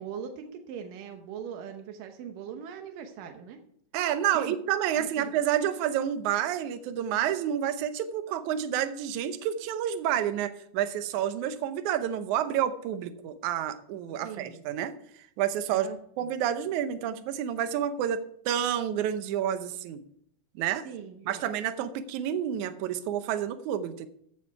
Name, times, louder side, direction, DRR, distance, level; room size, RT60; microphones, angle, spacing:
voice 1, 0.0-3.6 4.3-4.6 5.0-5.3 14.2-14.6 15.7-16.4 20.9-21.5, right 7 dB, 90° right, 5 dB, 2.6 m, -41 dB
voice 2, 3.9-14.9 15.4-15.9 16.2-20.0 20.6-20.9 21.3-24.1, right 10 dB, 75° right, 11 dB, 2.1 m, -29 dB
14.5 x 7.1 x 4.7 m, 0.67 s
omnidirectional pair, 3.7 m